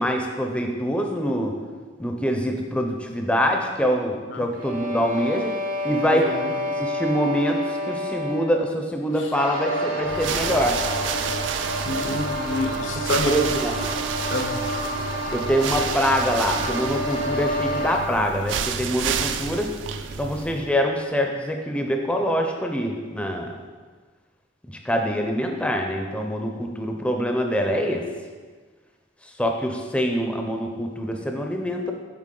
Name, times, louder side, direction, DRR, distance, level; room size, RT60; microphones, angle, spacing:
voice 1, 0.0-1.6 2.0-5.5 5.8-6.3 6.8-10.8 13.2-13.7 15.3-19.7 20.2-23.6 24.8-28.1 29.4-31.9, equal, 5° left, 2 dB, 0.4 m, -24 dB
sound 1, 4.5-8.7, left 2 dB, 45° right, 0.8 m, -29 dB
voice 2, 6.1-6.5 9.2-9.3 11.8-13.4 14.3-14.6, left 2 dB, 80° left, 5 dB, 0.7 m, -28 dB
sound 2, 9.3-18.0, right 1 dB, 90° right, 1.0 m, -29 dB
sound 3, 10.0-20.7, right 6 dB, 70° right, 0.4 m, -30 dB
7.4 x 4.8 x 3.7 m, 1.5 s
head